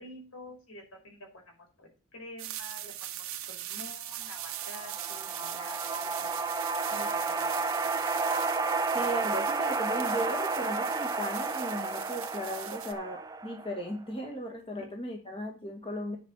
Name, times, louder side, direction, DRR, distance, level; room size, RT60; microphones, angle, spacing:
voice 1, 0.0-6.3 6.9-7.7 15.1-15.2, left 1 dB, 75° left, 1 dB, 5.3 m, -48 dB
sound 1, 2.4-12.9, right 12 dB, 75° right, 1.4 m, -41 dB
sound 2, 4.4-13.9, right 4 dB, 15° right, 0.6 m, -32 dB
voice 2, 8.9-16.2, equal, 25° left, 1 dB, 2.1 m, -36 dB
10.0 x 5.4 x 6.4 m, 0.34 s
head